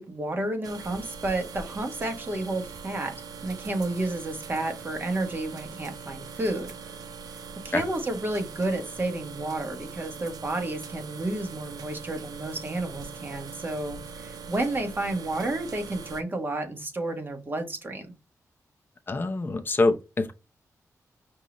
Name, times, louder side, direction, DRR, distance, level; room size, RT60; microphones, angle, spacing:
voice 1, 0.0-3.1 3.4-6.7 7.6-18.1, right 2 dB, 35° right, 1.4 m, -31 dB
sound 1, 0.6-16.2, right 5 dB, 85° right, 0.7 m, -42 dB
voice 2, 19.1-20.3, left 2 dB, 35° left, 0.7 m, -25 dB
5.3 x 2.6 x 3.0 m
wide cardioid pair, 105°, 6 cm